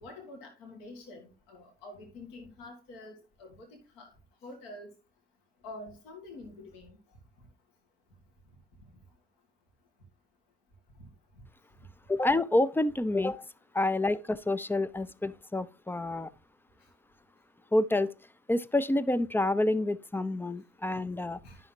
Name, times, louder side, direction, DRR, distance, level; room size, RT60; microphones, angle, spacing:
voice 1, 0.0-3.7 4.0-4.1 4.4-4.9 5.6-7.0 13.8-13.9 21.4-21.6, left 2 dB, 70° left, 2.0 m, -47 dB
voice 2, 12.1-13.5 13.7-16.3 17.7-18.1 18.5-21.4, left 2 dB, 5° left, 0.4 m, -28 dB
12.0 x 5.7 x 2.8 m
figure-of-eight pair, 55°, 32 cm